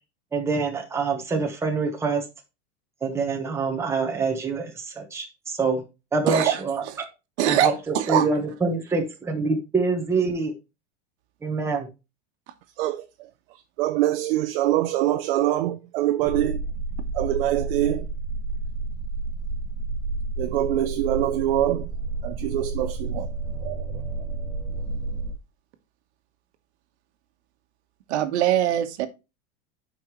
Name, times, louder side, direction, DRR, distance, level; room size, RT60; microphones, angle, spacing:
voice 1, 0.3-2.2 3.0-5.8 6.1-6.8 7.5-10.5 11.4-11.9, right 4 dB, 10° right, 1.2 m, -25 dB
voice 2, 6.3-6.6 6.9-7.0 7.4-8.3 28.1-29.1, right 11 dB, 75° right, 1.3 m, -22 dB
voice 3, 12.8-16.6 17.1-18.1 20.4-21.9 22.2-23.3 23.6-24.0, right 13 dB, 55° right, 0.7 m, -25 dB
sound 1, 16.2-25.3, right 3 dB, 25° right, 2.0 m, -31 dB
11.5 x 5.3 x 3.1 m
supercardioid pair, 170°, 34 cm